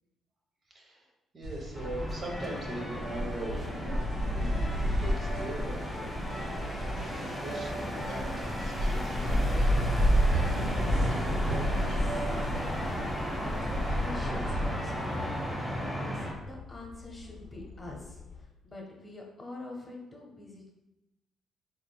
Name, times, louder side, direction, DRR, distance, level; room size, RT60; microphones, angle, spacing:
voice 1, 0.7-1.1 1.3-4.0 4.3-4.7 5.0-6.2 6.7-9.9, right 1 dB, 45° right, -1 dB, 1.0 m, -41 dB
sound 1, 1.4-14.7, equal, 85° right, 1.1 m, -31 dB
sound 2, 1.7-16.3, equal, 5° right, 1.0 m, -35 dB
sound 3, 2.6-18.4, left 5 dB, 60° left, 0.6 m, -49 dB
voice 2, 11.5-12.5 12.9-15.1 15.6-20.7, left 2 dB, 25° left, -1 dB, 0.9 m, -45 dB
3.9 x 3.6 x 2.3 m, 0.93 s
cardioid pair, 90°, 0 cm